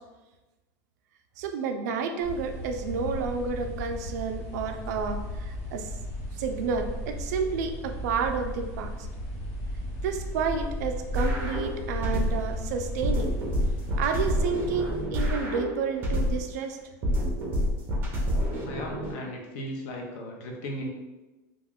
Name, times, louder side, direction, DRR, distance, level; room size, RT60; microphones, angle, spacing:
voice 1, 1.4-5.9 6.4-8.9 10.0-13.3 14.0-16.8 17.1-17.2, right 5 dB, 75° right, 5 dB, 0.4 m, -30 dB
sound 1, 2.2-15.0, left 1 dB, 70° left, 1.2 m, -36 dB
sound 2, 11.1-12.6 13.0-16.6 17.0-19.1, equal, 25° right, 0.5 m, -28 dB
voice 2, 18.6-20.9, equal, 55° left, 0 dB, 0.6 m, -36 dB
2.4 x 2.3 x 3.5 m, 1.1 s
supercardioid pair, 165°, 9 cm